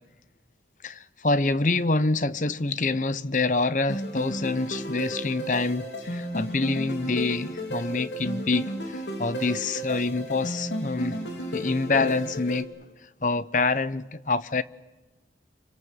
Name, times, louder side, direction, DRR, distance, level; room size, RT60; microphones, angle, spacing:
voice 1, 0.8-12.7 13.2-14.6, left 3 dB, 45° left, 0.9 m, -26 dB
sound 1, 3.9-12.6, equal, 90° left, 4.2 m, -33 dB
28.5 x 25.5 x 7.7 m
head